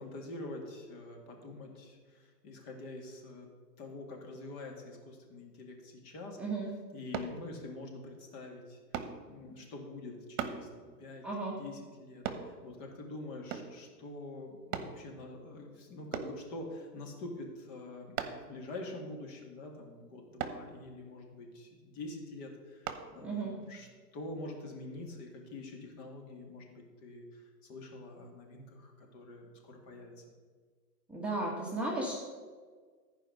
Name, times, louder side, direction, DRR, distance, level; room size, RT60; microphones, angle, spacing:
voice 1, 0.0-3.5 3.8-6.4 6.9-8.8 9.3-11.2 11.6-23.9 24.1-30.2, left 2 dB, 40° left, 1 dB, 2.2 m, -46 dB
voice 2, 6.4-6.7 11.2-11.6 23.2-23.5 31.1-32.1, right 2 dB, ahead, -5 dB, 1.3 m, -34 dB
sound 1, 7.1-7.4 8.9-9.2 10.4-10.6 12.2-12.5 13.5-13.8 14.7-15.0 16.1-16.4 18.2-18.5 20.4-20.6 22.9-23.0 23.6-23.7, right 8 dB, 50° right, 1.2 m, -37 dB
14.0 x 5.0 x 6.4 m, 1.6 s
hypercardioid pair, 125°, 50 cm